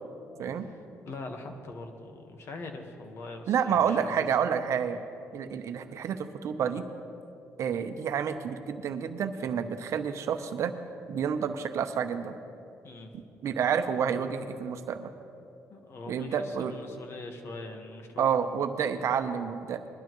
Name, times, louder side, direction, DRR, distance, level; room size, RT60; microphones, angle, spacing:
voice 1, 0.6-4.0 12.8-13.1 15.7-18.4, left 2 dB, 50° left, 4 dB, 1.5 m, -42 dB
voice 2, 3.5-5.0 5.3-6.9 7.6-10.7 11.1-12.4 13.4-15.1 16.1-16.7 18.2-19.9, right 7 dB, 65° right, 8 dB, 0.8 m, -29 dB
20.5 x 11.5 x 3.1 m, 2.7 s
cardioid pair, 105°, 5 cm